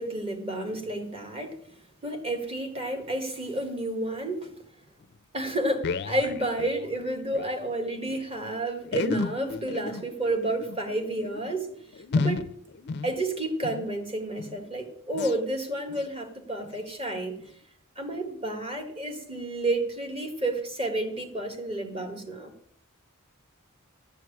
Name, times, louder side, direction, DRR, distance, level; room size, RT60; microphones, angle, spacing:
voice 1, 0.0-1.6 2.0-4.5 5.3-11.7 12.1-12.4 13.0-17.4 17.9-22.5, right 1 dB, 25° right, 1.6 m, -30 dB
sound 1, 5.0-5.1 5.4-7.6 7.8-7.9 8.1-8.2 8.8-13.9 14.3-14.7 15.1-15.4 15.9-16.1 16.6-16.8 17.4-17.5, left 4 dB, 50° left, 0.4 m, -33 dB
12.0 x 4.6 x 8.4 m
head